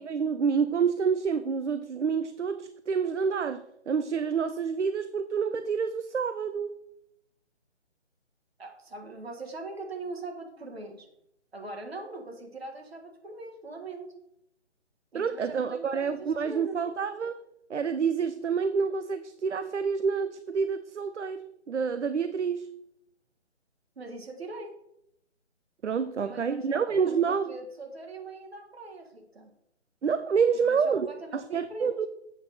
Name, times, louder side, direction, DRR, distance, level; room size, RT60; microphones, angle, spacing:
voice 1, 0.0-6.8 15.1-17.4 17.7-22.7 25.8-27.6 30.0-31.1 31.3-32.1, right 6 dB, 75° right, 0.6 m, -28 dB
voice 2, 8.6-11.1 11.5-14.1 15.1-16.8 24.0-24.7 26.2-29.5 30.5-32.0, right 2 dB, 60° right, 1.6 m, -41 dB
8.0 x 6.0 x 4.1 m
figure-of-eight pair, 150°, 36 cm